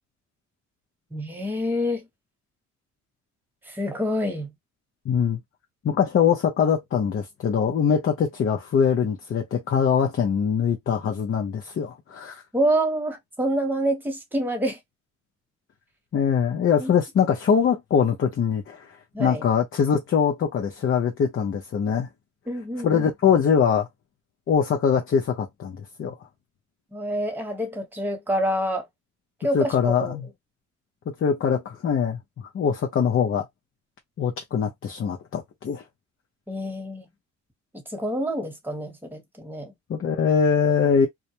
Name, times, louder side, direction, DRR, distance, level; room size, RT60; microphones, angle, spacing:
voice 1, 1.1-2.1 3.7-4.5 12.5-14.8 16.8-16.9 19.1-19.4 22.5-23.1 26.9-28.9 29.4-30.2 36.5-37.1 37.7-39.7, equal, 5° right, 1.0 m, -27 dB
voice 2, 5.0-5.4 5.8-12.4 16.1-22.1 22.8-23.9 24.5-26.1 29.5-30.3 31.1-33.5 34.2-35.8 39.9-41.1, left 7 dB, 45° left, 0.6 m, -23 dB
2.3 x 2.1 x 2.8 m
cardioid pair, 90°, 30 cm